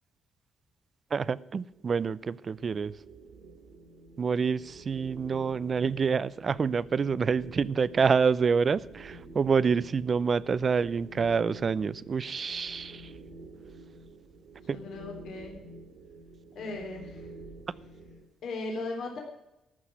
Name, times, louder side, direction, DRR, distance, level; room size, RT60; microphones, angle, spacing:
voice 1, 1.1-2.9 4.2-13.1 14.7-14.8, right 5 dB, 40° right, 19 dB, 0.5 m, -27 dB
sound 1, 1.5-18.2, right 2 dB, 60° right, 2.4 m, -49 dB
voice 2, 14.7-15.6 16.5-17.3 18.4-19.2, left 3 dB, 70° left, 1 dB, 3.3 m, -37 dB
13.5 x 6.3 x 9.6 m, 0.91 s
cardioid pair, 90°, 0 cm